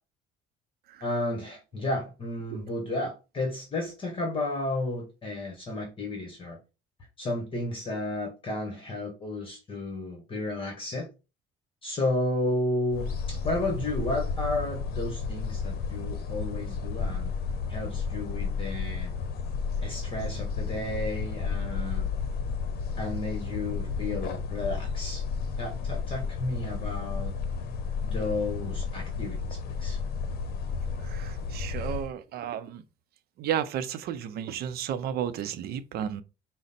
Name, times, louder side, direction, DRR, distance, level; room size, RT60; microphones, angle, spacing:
voice 1, 1.0-6.6 7.2-11.1 11.8-17.3 17.7-19.1 19.8-22.1 23.0-25.2 25.6-27.3 28.0-30.0, left 2 dB, 30° left, 1.2 m, -32 dB
sound 1, 12.9-32.1, left 5 dB, 65° left, 0.7 m, -32 dB
voice 2, 31.0-32.8 33.4-36.2, right 9 dB, 65° right, 0.5 m, -33 dB
5.0 x 2.1 x 4.1 m
cardioid pair, 110°, 17 cm